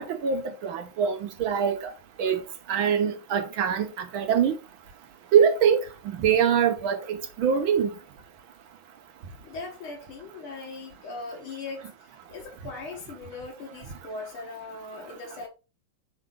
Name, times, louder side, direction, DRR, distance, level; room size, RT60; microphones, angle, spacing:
voice 1, 0.0-1.9 2.2-2.4 2.7-4.6 5.3-5.8 6.1-7.9, right 7 dB, 75° right, 1.7 m, -23 dB
voice 2, 9.4-11.9 12.3-15.5, left 3 dB, 80° left, 2.4 m, -39 dB
6.5 x 4.8 x 3.8 m
omnidirectional pair, 2.3 m